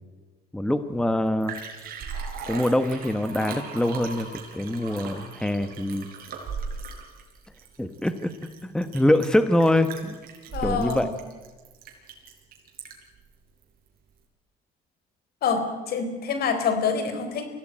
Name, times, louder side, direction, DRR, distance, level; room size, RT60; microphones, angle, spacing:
voice 1, 0.5-1.6 2.5-4.3 4.5-6.1 7.8-8.3 8.6-10.1 10.6-11.1, left 1 dB, 5° left, 10 dB, 1.2 m, -24 dB
Liquid, 1.0-1.1 1.2-13.2 13.6-13.7, right 5 dB, 60° right, 5.4 m, -38 dB
voice 2, 10.5-11.1 15.4-17.5, left 6 dB, 65° left, 8 dB, 4.1 m, -26 dB
24.5 x 16.5 x 9.0 m, 1.3 s
cardioid pair, 110°, 17 cm